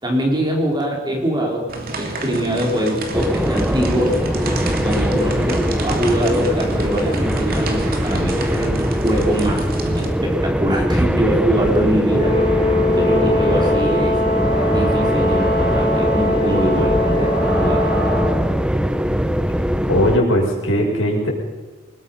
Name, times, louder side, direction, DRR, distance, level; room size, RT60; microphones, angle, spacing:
voice 1, 0.0-1.7 1.9-4.2 4.8-9.7 9.9-12.4 12.9-14.2 14.7-17.9, equal, 20° right, 0 dB, 4.3 m, -22 dB
sound 1, 1.7-10.1, right 2 dB, 50° right, 2.8 m, -29 dB
sound 2, 3.1-20.2, equal, 5° right, 0.7 m, -21 dB
Brass instrument, 12.1-18.5, left 2 dB, 25° left, 3.1 m, -21 dB
voice 2, 19.9-21.3, equal, 90° left, -1 dB, 6.0 m, -18 dB
23.5 x 20.5 x 5.7 m, 1.3 s
head